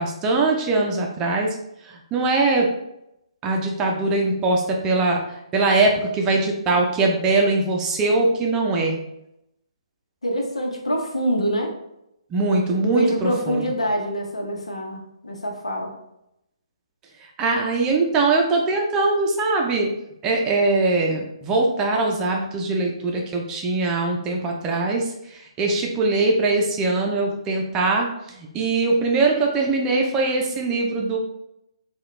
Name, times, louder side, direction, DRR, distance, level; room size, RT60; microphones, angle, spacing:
voice 1, 0.0-1.5 1.9-2.7 3.4-5.2 5.5-9.0 12.3-13.6 17.4-19.9 20.2-28.1 28.3-31.2, right 3 dB, 20° right, 0 dB, 0.6 m, -21 dB
voice 2, 10.2-11.7 12.7-15.9, equal, 85° left, 2 dB, 0.8 m, -25 dB
3.8 x 2.3 x 3.2 m, 0.82 s
figure-of-eight pair, 140°, 3 cm